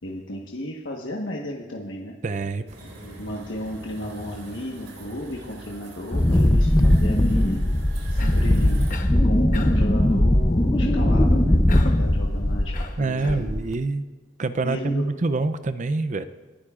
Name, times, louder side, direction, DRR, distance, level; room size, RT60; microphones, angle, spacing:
voice 1, 0.0-2.1 2.8-7.6 8.1-8.8 9.2-13.6 14.6-15.1, left 1 dB, 75° left, -1 dB, 1.3 m, -34 dB
voice 2, 2.2-2.6 13.0-14.0 14.4-16.3, right 3 dB, 40° right, 11 dB, 0.5 m, -25 dB
sound 1, 2.7-9.0, right 1 dB, 80° right, 4.0 m, -42 dB
Wind, 6.1-12.9 13.3-13.7, left 1 dB, 20° left, 0.6 m, -19 dB
Cough, 8.2-8.5 8.9-9.2 9.5-9.9 11.7-12.1 12.7-13.5, left 3 dB, 45° left, 1.0 m, -37 dB
29.0 x 11.5 x 2.5 m, 1.2 s
head